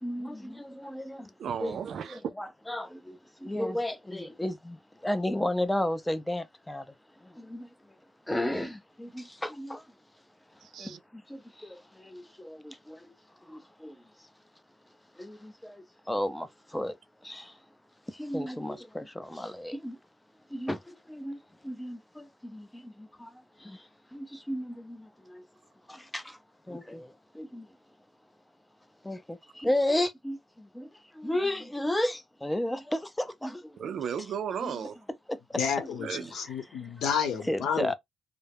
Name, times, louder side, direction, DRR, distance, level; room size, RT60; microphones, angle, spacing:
voice 1, 0.0-1.3 1.6-1.8 2.1-6.9 7.2-7.7 8.3-9.8 10.8-13.1 13.5-14.0 15.2-17.0 17.2-17.6 18.1-20.0 20.5-23.3 23.6-25.4 25.9-26.4 26.7-27.7 29.0-30.9 31.1-33.8 34.6-34.8 35.3-35.6 36.0-36.3 36.8-36.9 37.5-37.9, left 1 dB, 10° left, 0.4 m, -34 dB
voice 2, 1.4-2.2 10.6-11.0 33.8-35.0 36.0-36.3, right 8 dB, 65° right, 0.3 m, -35 dB
voice 3, 35.6-37.9, left 7 dB, 75° left, 0.8 m, -30 dB
2.2 x 2.0 x 3.3 m
cardioid pair, 90°, 0 cm